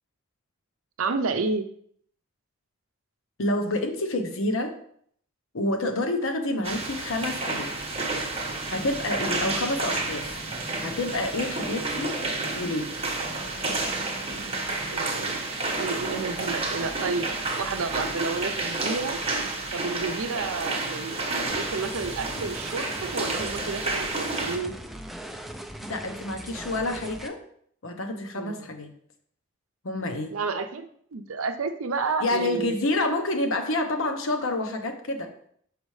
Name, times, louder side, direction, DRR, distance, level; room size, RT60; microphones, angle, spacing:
voice 1, 1.0-1.6 14.9-15.5 15.8-19.2 19.7-21.2 21.5-24.7 28.4-28.7 30.3-30.9 31.1-32.7, right 4 dB, 75° right, 8 dB, 0.6 m, -30 dB
voice 2, 3.4-4.7 5.5-7.7 8.7-10.3 10.8-12.2 12.5-12.9 25.8-27.4 27.8-28.9 29.8-30.3 32.2-35.3, left 2 dB, 65° left, 5 dB, 0.8 m, -28 dB
sound 1, 6.6-24.6, right 3 dB, 30° right, 0.9 m, -30 dB
sound 2, 21.5-27.3, right 1 dB, ahead, 0.4 m, -39 dB
6.4 x 4.9 x 3.2 m, 0.64 s
head